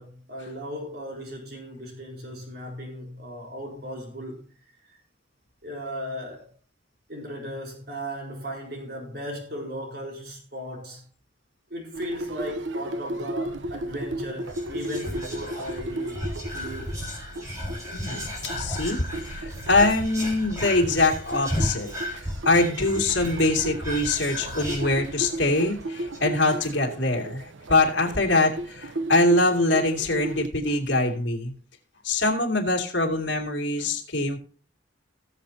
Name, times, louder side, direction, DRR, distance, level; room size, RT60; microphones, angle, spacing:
voice 1, 0.0-4.4 4.9-5.0 5.6-6.5 7.1-11.0 11.7-16.2 16.5-16.9, equal, 55° right, 4.4 m, -36 dB
sound 1, 11.9-30.5, right 1 dB, 85° right, 0.9 m, -35 dB
Whispering, 14.4-25.5 25.8-25.9 26.1-26.5, left 1 dB, 15° right, 4.0 m, -34 dB
voice 2, 17.9-18.3 18.6-19.1 19.3-31.5 32.0-34.4, left 2 dB, 70° left, 2.6 m, -23 dB
19.0 x 7.0 x 2.8 m
head